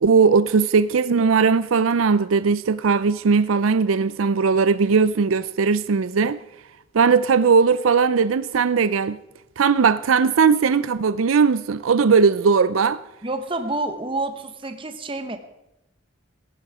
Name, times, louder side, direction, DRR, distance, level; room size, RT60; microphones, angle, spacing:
voice 1, 0.0-6.4 6.9-9.2 9.6-13.0, right 5 dB, 90° right, 0.5 m, -18 dB
voice 2, 13.2-15.4, right 2 dB, 25° right, 1.0 m, -28 dB
17.0 x 15.5 x 4.9 m
head